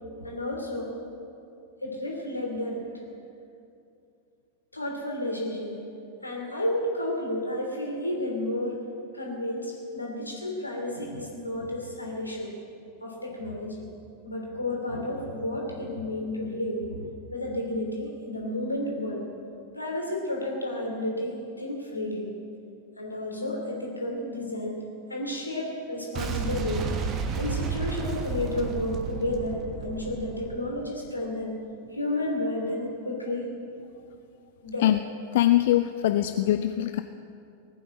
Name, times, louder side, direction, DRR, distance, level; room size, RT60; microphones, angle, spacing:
voice 1, 0.2-0.9 1.8-2.8 4.7-5.8 6.2-8.8 9.1-12.5 13.0-13.8 14.2-17.0 17.3-19.2 19.7-22.3 23.0-24.8 25.1-26.8 27.4-31.5 31.9-33.5 34.6-34.9, left 1 dB, 85° left, 0 dB, 3.0 m, -31 dB
Boom, 26.2-31.1, right 5 dB, 30° right, 1.3 m, -32 dB
voice 2, 35.3-37.0, left 13 dB, 55° left, 10 dB, 0.5 m, -22 dB
19.0 x 9.3 x 7.7 m, 2.6 s
figure-of-eight pair, 90°, 0 cm